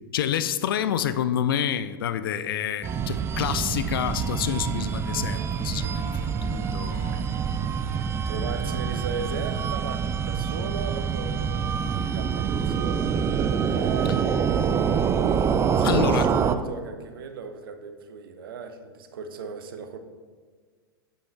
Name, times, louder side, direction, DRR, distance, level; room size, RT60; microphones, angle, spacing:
voice 1, 0.1-7.5 15.8-16.3, left 9 dB, 65° left, 0.5 m, -28 dB
sound 1, 2.8-16.6, right 7 dB, 20° right, 0.4 m, -26 dB
voice 2, 8.3-14.6 15.6-20.0, right 5 dB, 70° right, 0.8 m, -37 dB
7.4 x 5.4 x 4.5 m
hypercardioid pair, 100°, 12 cm